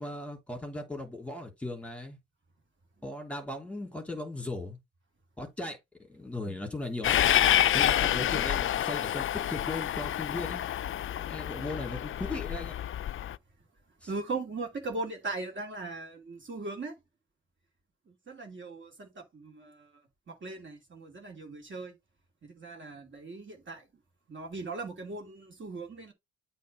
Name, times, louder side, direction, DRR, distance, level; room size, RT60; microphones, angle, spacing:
voice 1, 0.0-2.2 3.0-4.8 5.4-5.8 6.1-7.2 7.7-10.6 11.2-12.7 14.0-14.1, left 2 dB, 5° left, 3.1 m, -37 dB
Train, 7.0-13.3, left 11 dB, 45° left, 0.4 m, -28 dB
voice 2, 14.1-16.9 18.1-19.9 20.3-22.0 22.4-23.8 24.3-26.1, right 3 dB, 40° right, 2.7 m, -39 dB
8.4 x 3.4 x 5.2 m
cardioid pair, 90°, 30 cm